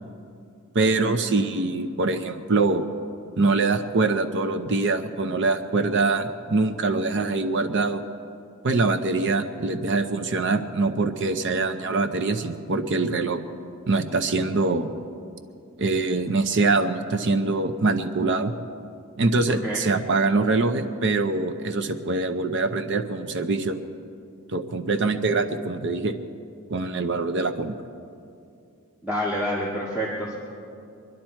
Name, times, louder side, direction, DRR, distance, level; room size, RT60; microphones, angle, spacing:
voice 1, 0.7-2.9 3.4-8.0 8.6-13.4 13.9-14.9 15.8-18.5 19.2-23.8 24.5-26.2 26.7-27.8, right 3 dB, 60° right, 8 dB, 0.7 m, -24 dB
voice 2, 19.5-19.8 29.0-30.4, equal, 10° right, -6 dB, 1.8 m, -28 dB
25.0 x 11.0 x 4.5 m, 2.5 s
head